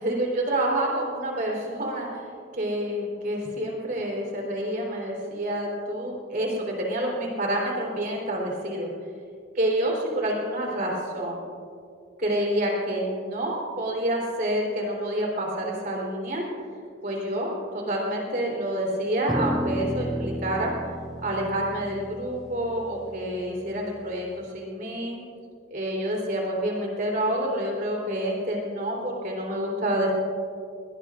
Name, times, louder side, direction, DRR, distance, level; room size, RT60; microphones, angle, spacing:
voice 1, 0.0-2.2 2.5-8.9 9.5-11.5 12.2-16.4 17.0-20.7 21.2-25.2 25.7-30.1, right 1 dB, 45° right, -1 dB, 3.7 m, -28 dB
sound 1, 19.3-23.8, equal, ahead, 0.6 m, -32 dB
21.5 x 19.5 x 2.5 m, 2.3 s
head